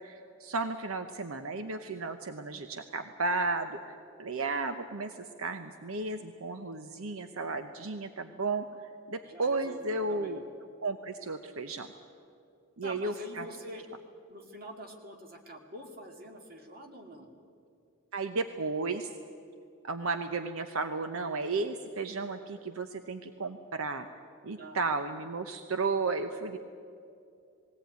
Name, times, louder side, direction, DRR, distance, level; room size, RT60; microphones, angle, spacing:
voice 1, 0.0-8.7 9.1-10.4 10.8-11.9 12.8-13.5 18.1-19.1 19.8-24.1 24.4-26.6, right 3 dB, 75° right, 8 dB, 0.8 m, -34 dB
voice 2, 9.2-10.4 12.8-13.8 14.3-17.3 24.6-24.8, equal, 40° right, 3 dB, 2.3 m, -46 dB
20.0 x 17.0 x 9.3 m, 2.5 s
head